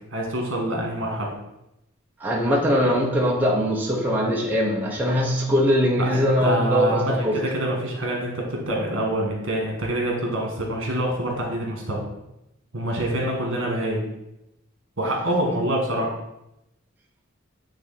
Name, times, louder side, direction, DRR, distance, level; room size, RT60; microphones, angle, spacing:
voice 1, 0.1-1.3 6.0-12.0 12.7-14.0 15.0-16.1, right 1 dB, 65° right, 0 dB, 1.9 m, -26 dB
voice 2, 2.2-7.4, equal, 10° right, -4 dB, 0.9 m, -21 dB
8.9 x 3.5 x 4.2 m, 0.86 s
head